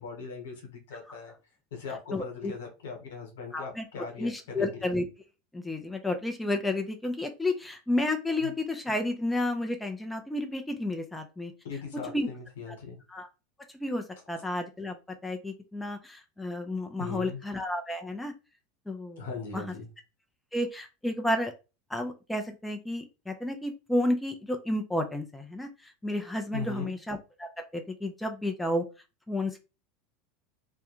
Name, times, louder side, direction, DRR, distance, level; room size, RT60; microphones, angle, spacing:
voice 1, 0.0-1.3 1.7-4.8 8.4-8.5 11.6-13.0 17.0-17.4 19.2-19.9 26.5-26.9, left 5 dB, 85° left, 2 dB, 1.1 m, -39 dB
voice 2, 2.1-2.5 3.5-3.9 4.2-5.0 5.5-11.5 12.1-12.3 12.7-12.8 13.1-13.3 13.7-15.0 15.2-18.3 18.9-19.3 19.5-19.7 20.5-21.5 21.9-28.8 29.3-29.6, left 1 dB, 5° left, 4 dB, 0.4 m, -31 dB
2.3 x 2.1 x 2.9 m, 0.29 s
hypercardioid pair, 105°, 0 cm